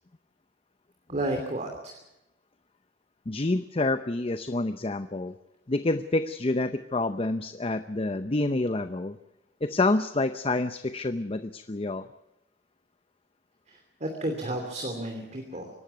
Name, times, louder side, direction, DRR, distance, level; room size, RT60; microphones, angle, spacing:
voice 1, 1.1-2.0 13.7-15.7, right 1 dB, 40° right, 3 dB, 2.9 m, -32 dB
voice 2, 3.3-5.4 5.7-9.2 9.6-12.0, left 2 dB, 35° left, 10 dB, 0.7 m, -28 dB
25.5 x 12.0 x 9.3 m, 0.91 s
head